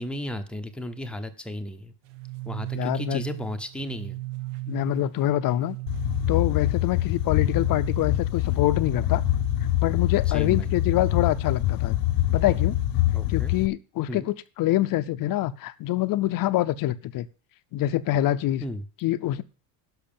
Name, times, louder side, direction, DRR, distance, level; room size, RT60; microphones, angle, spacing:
voice 1, 0.0-1.9 2.4-4.2 10.3-10.7 13.1-13.5 14.1-14.3 18.6-18.8, left 1 dB, ahead, 0.7 m, -34 dB
sound 1, 2.0-13.0, right 21 dB, 80° right, 1.2 m, -38 dB
voice 2, 2.7-3.2 4.7-5.8 6.3-9.2 9.8-12.0 12.3-12.8 13.3-17.3 17.7-18.6 19.0-19.4, left 14 dB, 45° left, 0.6 m, -25 dB
sound 2, 5.9-13.7, left 16 dB, 80° left, 0.7 m, -25 dB
10.5 x 6.3 x 6.9 m
cardioid pair, 160°, 49 cm